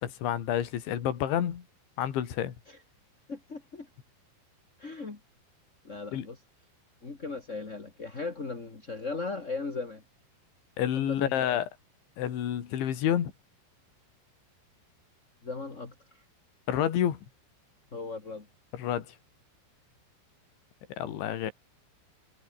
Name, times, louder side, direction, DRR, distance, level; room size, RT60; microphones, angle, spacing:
voice 1, 0.0-1.6 2.0-2.5 6.1-6.3 10.8-11.7 12.2-13.3 16.7-17.2 18.7-19.1 20.9-21.5, left 10 dB, 70° left, 5.1 m, -29 dB
voice 2, 3.3-3.9 4.8-5.2 5.8-6.4 7.0-10.0 10.9-11.6 15.4-15.9 17.9-18.5 21.4-21.5, left 3 dB, 25° left, 1.9 m, -37 dB
omnidirectional pair, 5.6 m